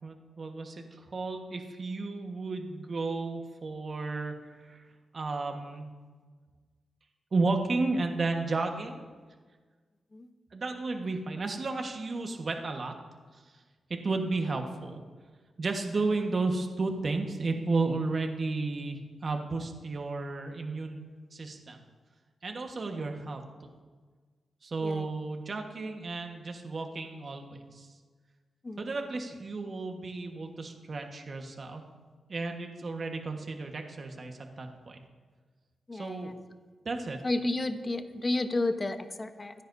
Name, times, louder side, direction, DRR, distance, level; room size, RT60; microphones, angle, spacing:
voice 1, 0.0-4.8 5.1-5.9 7.3-9.0 10.5-12.9 13.3-13.4 13.9-15.0 15.6-21.0 21.3-21.8 22.4-23.7 24.6-27.9 28.8-31.8 32.3-35.0 35.9-36.3 36.8-37.2, right 3 dB, 55° right, 4 dB, 1.5 m, -33 dB
voice 2, 28.6-29.0 35.9-36.4 37.2-39.5, left 2 dB, 35° left, 8 dB, 1.1 m, -32 dB
26.0 x 10.0 x 2.7 m, 1.5 s
cardioid pair, 60°, 0 cm